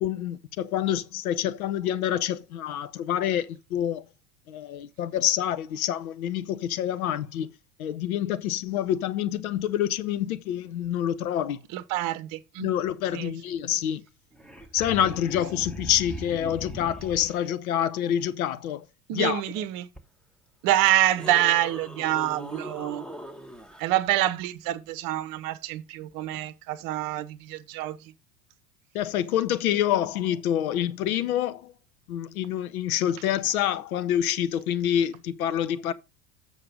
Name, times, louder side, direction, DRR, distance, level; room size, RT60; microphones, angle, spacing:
voice 1, 0.0-4.0 4.5-7.5 7.8-11.6 12.6-14.0 14.7-18.8 19.1-19.7 28.9-31.7 32.1-35.9, left 10 dB, 65° left, 0.8 m, -27 dB
voice 2, 11.7-12.7 13.1-13.3 19.1-19.9 20.6-23.0 23.8-28.1, right 13 dB, 45° right, 0.9 m, -26 dB
sound 1, 14.1-14.2 14.3-17.5 20.0-20.1 20.7-23.8 26.3-26.4, equal, ahead, 1.3 m, -40 dB
7.6 x 5.5 x 5.1 m
figure-of-eight pair, 80°, 46 cm